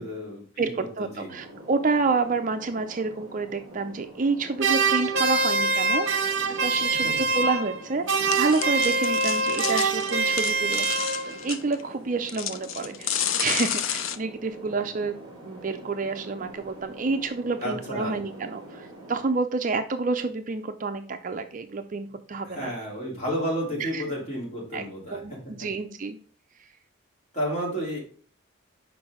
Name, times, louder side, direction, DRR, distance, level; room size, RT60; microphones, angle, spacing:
voice 1, 0.0-0.7 1.0-1.3 7.0-7.1 17.6-18.1 22.4-25.2 27.3-28.0, equal, 30° left, -3 dB, 2.9 m, -31 dB
voice 2, 0.6-10.9 11.2-15.2 15.4-22.7 23.8-24.0 24.7-26.2, right 4 dB, 35° right, 7 dB, 0.5 m, -29 dB
sound 1, 1.3-19.3, right 2 dB, 20° right, 1.6 m, -45 dB
sound 2, 4.6-7.8 8.1-11.5, right 3 dB, 55° right, 0.8 m, -24 dB
sound 3, 6.8-6.9 7.1-7.2 8.2-11.8 12.3-14.2, left 9 dB, 65° left, 0.5 m, -31 dB
6.0 x 5.2 x 4.8 m, 0.43 s
head